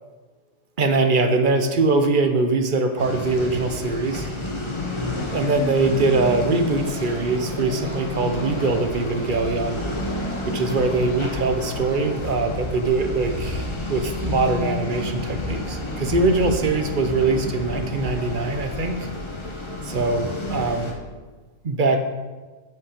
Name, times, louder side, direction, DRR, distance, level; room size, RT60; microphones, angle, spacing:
voice 1, 0.8-4.3 5.3-9.9 10.5-19.1 19.8-20.8 21.6-22.0, right 3 dB, 45° right, 7 dB, 0.8 m, -22 dB
sound 1, 3.0-20.9, left 2 dB, 25° left, 1.0 m, -30 dB
Alarm, 6.3-12.0, equal, 50° left, 2.8 m, -39 dB
7.9 x 7.7 x 5.0 m, 1.3 s
omnidirectional pair, 1.4 m